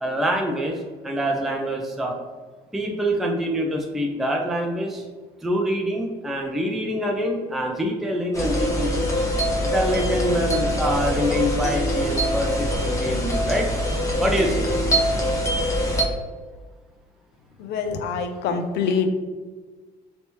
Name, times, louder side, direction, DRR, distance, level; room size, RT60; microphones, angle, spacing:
voice 1, 0.0-2.2 2.7-5.0 5.4-9.1 9.6-13.7 14.2-14.7, equal, ahead, 1 dB, 0.4 m, -25 dB
sound 1, 8.3-16.0, equal, 20° left, 0.8 m, -23 dB
voice 2, 17.6-19.1, left 5 dB, 80° left, 7 dB, 0.5 m, -25 dB
3.4 x 2.8 x 2.9 m, 1.4 s
cardioid pair, 110°, 17 cm